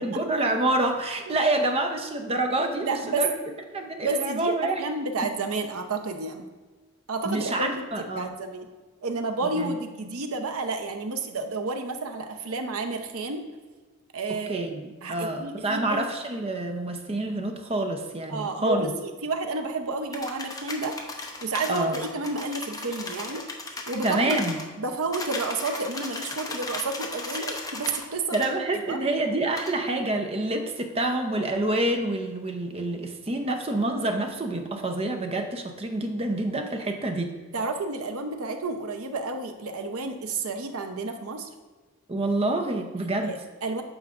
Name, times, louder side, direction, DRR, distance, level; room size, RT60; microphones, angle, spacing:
voice 1, 0.0-3.4 3.7-4.8 7.2-8.3 9.4-9.8 14.3-18.9 21.7-22.0 24.0-24.6 28.3-37.3 42.1-43.4, right 2 dB, 25° right, 5 dB, 0.7 m, -27 dB
voice 2, 2.8-3.2 4.0-6.5 7.1-7.8 8.2-8.7 9.0-13.5 14.1-14.7 15.0-16.1 18.3-23.4 23.9-24.4 24.8-28.4 28.7-29.0 37.5-41.5 43.2-43.8, right 3 dB, 75° right, 6 dB, 0.7 m, -31 dB
sound 1, 20.1-24.7 25.1-28.1 28.3-28.5 29.6-29.7, left 2 dB, 15° left, 0.7 m, -36 dB
9.2 x 6.5 x 2.5 m, 1.3 s
head